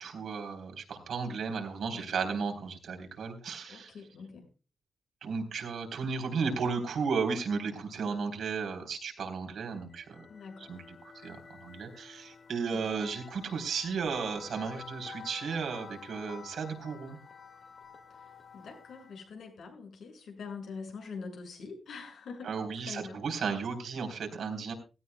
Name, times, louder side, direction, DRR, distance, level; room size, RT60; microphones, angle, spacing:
voice 1, 0.0-3.9 5.2-10.3 10.6-17.2 22.4-24.7, right 5 dB, 80° right, 4 dB, 3.7 m, -34 dB
voice 2, 3.7-4.5 10.3-10.7 18.5-22.5 22.9-23.2, left 5 dB, 85° left, 3 dB, 6.0 m, -44 dB
sound 1, 9.8-19.3, left 6 dB, 50° left, 2.1 m, -50 dB
16.5 x 16.5 x 2.2 m, 0.31 s
wide cardioid pair, 115°, 0 cm